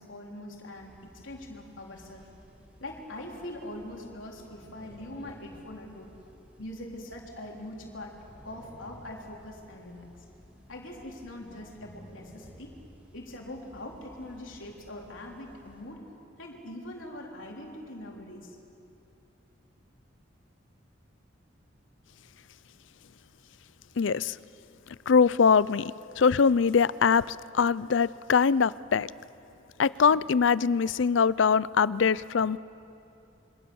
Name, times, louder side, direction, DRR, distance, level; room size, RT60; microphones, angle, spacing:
voice 1, 0.0-2.3 2.8-6.1 6.6-8.2 8.4-10.1 10.7-12.8 13.1-16.0 16.4-18.6, left 1 dB, 90° left, -1 dB, 3.7 m, -42 dB
sound 1, 0.7-15.8, equal, 10° right, 4.4 m, -55 dB
voice 2, 24.0-24.4 25.1-29.1 29.8-32.6, left 6 dB, 75° left, 19 dB, 0.5 m, -23 dB
27.5 x 25.0 x 7.1 m, 2.8 s
head